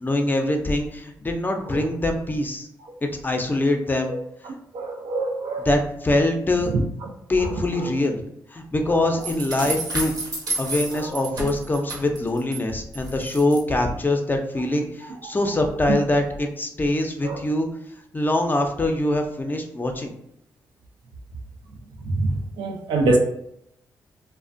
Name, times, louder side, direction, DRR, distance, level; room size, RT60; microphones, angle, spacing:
voice 1, 0.0-2.7 3.0-4.1 5.6-6.7 7.3-8.2 8.5-10.1 10.6-17.7 18.1-20.1, left 1 dB, 25° left, 4 dB, 0.4 m, -23 dB
voice 2, 4.7-5.7 17.2-17.4 22.1-22.3 22.6-23.2, right 2 dB, 85° right, 2 dB, 0.4 m, -23 dB
sound 1, 9.2-12.6 12.9-13.6, right 3 dB, 60° right, 0.8 m, -30 dB
2.3 x 2.1 x 2.5 m, 0.76 s
cardioid pair, 60°, 8 cm